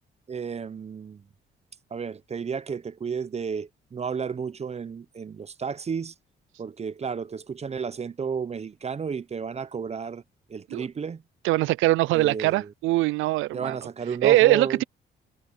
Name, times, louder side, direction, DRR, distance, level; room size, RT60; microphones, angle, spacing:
voice 1, 0.3-1.2 1.9-6.1 6.6-10.2 10.5-11.2 12.1-12.7 13.5-14.8, right 6 dB, 35° right, 0.7 m, -32 dB
voice 2, 11.4-13.8 14.2-14.8, right 18 dB, 90° right, 0.4 m, -22 dB
cardioid pair, 90°, 20 cm